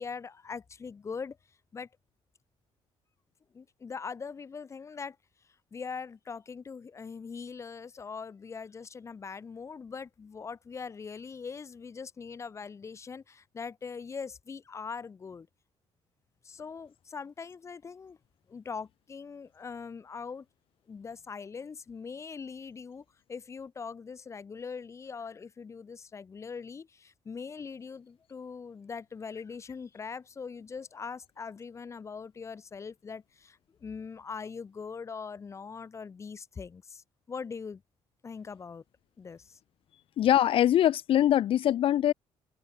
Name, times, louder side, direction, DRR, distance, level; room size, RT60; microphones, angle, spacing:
voice 1, 0.0-1.4 1.7-1.9 3.5-5.2 5.7-15.5 16.4-18.2 18.5-20.5 20.9-37.8 38.2-38.8 39.2-39.6, left 5 dB, 25° left, 3.3 m, -41 dB
voice 2, 40.2-42.1, left 11 dB, 55° left, 1.5 m, -23 dB
cardioid pair, 160°, 11 cm